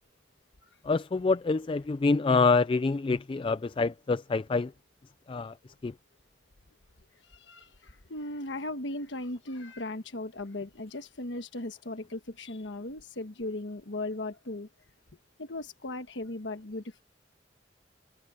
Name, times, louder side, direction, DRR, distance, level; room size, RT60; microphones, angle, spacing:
voice 1, 0.8-4.7 5.3-5.5 5.8-5.9, left 4 dB, 30° left, 0.3 m, -26 dB
voice 2, 7.2-14.7 15.4-17.0, left 2 dB, 80° left, 1.3 m, -37 dB
head